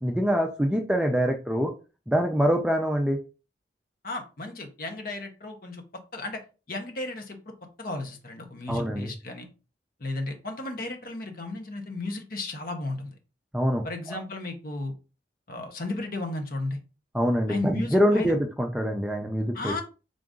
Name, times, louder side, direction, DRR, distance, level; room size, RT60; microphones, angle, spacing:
voice 1, 0.0-1.7 2.1-3.2 8.7-9.1 13.5-14.2 17.1-19.7, equal, 5° right, 3 dB, 0.4 m, -25 dB
voice 2, 4.0-5.8 6.1-6.4 6.7-7.5 7.8-9.5 10.0-13.1 13.8-14.9 15.5-16.8 17.5-18.3 19.5-19.8, left 2 dB, 50° left, 4 dB, 0.8 m, -34 dB
3.7 x 2.5 x 3.6 m, 0.32 s
head